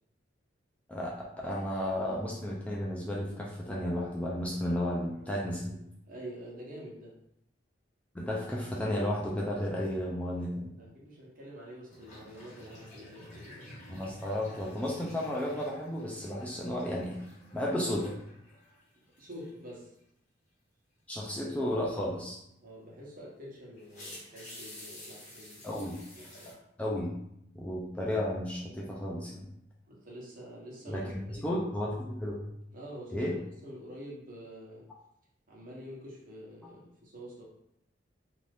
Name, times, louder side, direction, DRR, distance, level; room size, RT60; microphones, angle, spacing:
voice 1, 1.4-5.8 8.1-10.7 13.9-17.2 17.5-18.1 21.1-22.4 25.6-26.0 26.8-27.1 27.5-29.5 30.9-32.4 33.1-33.3, left 1 dB, 5° left, -4 dB, 0.4 m, -33 dB
voice 2, 6.1-7.2 10.8-13.7 19.2-19.9 22.6-25.8 26.1-26.5 29.9-31.5 32.7-34.9 35.5-37.4, equal, 50° right, -4 dB, 0.9 m, -47 dB
sound 1, 11.9-18.8 19.1-19.6 22.9-23.0 23.8-26.5, equal, 40° left, 1.2 m, -50 dB
2.7 x 2.4 x 3.3 m, 0.79 s
head